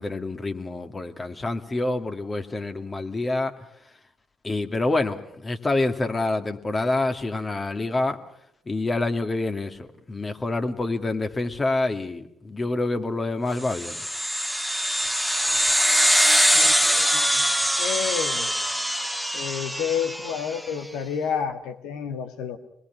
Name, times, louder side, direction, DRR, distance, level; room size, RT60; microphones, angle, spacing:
voice 1, 0.0-3.5 4.4-8.2 8.7-14.0, left 2 dB, 30° left, 6 dB, 2.4 m, -27 dB
sound 1, 13.7-20.5, equal, 5° left, 1.7 m, -23 dB
voice 2, 16.5-17.4 17.8-18.5 19.3-22.6, left 7 dB, 75° left, 7 dB, 1.9 m, -30 dB
26.5 x 20.5 x 6.1 m, 0.73 s
hypercardioid pair, 50°, 0 cm